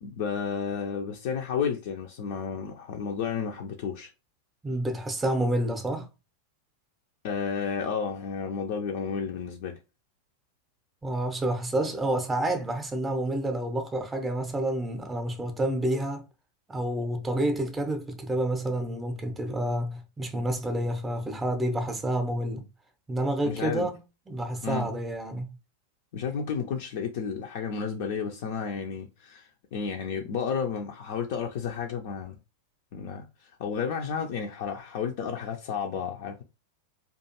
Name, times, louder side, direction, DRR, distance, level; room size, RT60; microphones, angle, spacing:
voice 1, 0.0-4.1 7.2-9.8 23.4-23.9 24.6-24.9 26.1-32.4 32.9-36.4, left 6 dB, 50° left, 0.4 m, -32 dB
voice 2, 4.6-6.1 11.0-16.2 16.7-22.7 23.1-25.5, right 1 dB, 10° right, 0.5 m, -29 dB
2.4 x 2.3 x 2.8 m
figure-of-eight pair, 90°, 0 cm